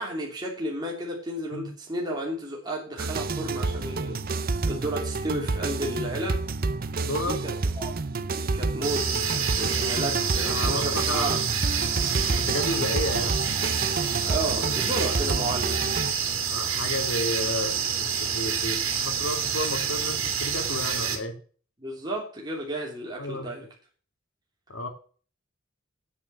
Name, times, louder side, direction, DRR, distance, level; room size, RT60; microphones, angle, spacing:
voice 1, 0.0-6.4 7.2-7.9 8.3-11.4 14.2-15.8 21.8-23.7, right 1 dB, 20° right, -2 dB, 3.1 m, -33 dB
sound 1, 3.0-16.1, right 3 dB, 45° right, 0.7 m, -29 dB
voice 2, 7.0-7.4 10.4-11.5 12.3-13.4 16.5-21.4 23.2-23.5 24.7-24.9, left 1 dB, 80° left, 4 dB, 2.6 m, -32 dB
sound 2, 8.8-21.2, right 7 dB, 90° right, 2.8 m, -28 dB
9.4 x 8.5 x 7.5 m, 0.41 s
head